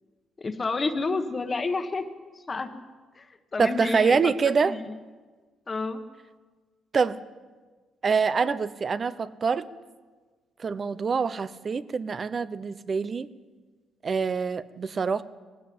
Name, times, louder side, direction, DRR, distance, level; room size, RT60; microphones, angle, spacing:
voice 1, 0.4-2.0 2.3-2.7 3.2-5.0 5.7-6.0, left 3 dB, 30° left, 6 dB, 1.4 m, -30 dB
voice 2, 3.6-4.8 6.9-7.2 8.0-9.7 10.6-13.3 14.0-15.2, right 5 dB, 40° right, 14 dB, 0.9 m, -25 dB
19.0 x 15.5 x 8.7 m, 1.4 s
cardioid pair, 90°, 0 cm